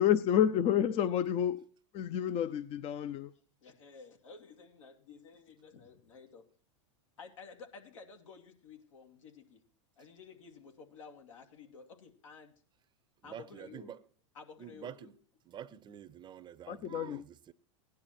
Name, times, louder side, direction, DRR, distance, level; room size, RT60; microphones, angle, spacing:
voice 1, 0.0-1.7 1.9-3.3 16.7-17.2, left 10 dB, 35° left, 0.7 m, -29 dB
voice 2, 3.6-6.4 7.2-9.6 10.0-12.5 13.2-13.9 14.3-15.1, left 5 dB, 85° left, 2.5 m, -53 dB
voice 3, 13.2-14.0 14.6-15.1 15.5-17.5, right 9 dB, 30° right, 0.7 m, -47 dB
16.5 x 10.5 x 4.4 m
hypercardioid pair, 110°, 16 cm